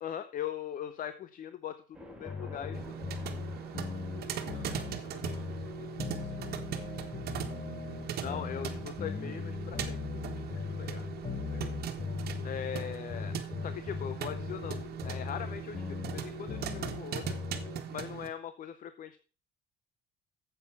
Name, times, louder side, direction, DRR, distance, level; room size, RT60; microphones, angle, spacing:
voice 1, 0.0-2.8 3.2-3.4 8.2-10.0 12.4-13.4 13.6-17.4 17.9-19.2, left 9 dB, 55° left, 12 dB, 0.8 m, -40 dB
sound 1, 1.9-17.1, right 2 dB, 5° right, 3.0 m, -56 dB
sound 2, 2.2-17.8, left 6 dB, 35° left, 1.0 m, -40 dB
sound 3, 2.7-18.3, right 9 dB, 65° right, 1.4 m, -40 dB
voice 2, 3.8-4.1 4.5-7.4 8.1-8.4 10.3-11.8 12.4-12.6 15.3-15.6, left 4 dB, 70° left, 2 dB, 4.9 m, -55 dB
8.7 x 8.0 x 5.9 m, 0.37 s
cardioid pair, 110°, 17 cm